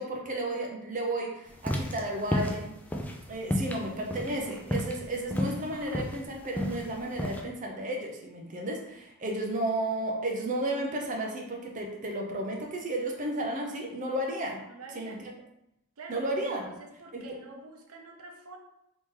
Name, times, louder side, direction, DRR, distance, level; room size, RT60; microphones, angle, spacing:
voice 1, 0.0-2.7 3.3-14.6 15.0-15.1 16.1-16.7 17.1-17.2, right 1 dB, 35° right, 0 dB, 0.5 m, -33 dB
sound 1, 1.5-7.4, left 1 dB, 5° left, 0.3 m, -32 dB
voice 2, 14.7-15.3 16.0-16.3 16.8-18.6, right 3 dB, 85° right, 2 dB, 0.6 m, -46 dB
2.9 x 2.8 x 3.6 m, 0.82 s
head